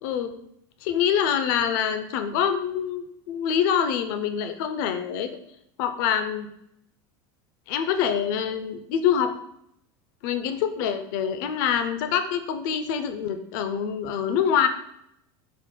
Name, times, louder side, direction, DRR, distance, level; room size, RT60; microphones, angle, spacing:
voice 1, 0.0-0.4 0.8-5.3 5.8-6.5 7.7-9.3 10.2-14.7, left 8 dB, 70° left, 8 dB, 0.5 m, -25 dB
4.3 x 2.1 x 4.4 m, 0.75 s
supercardioid pair, 145°, 11 cm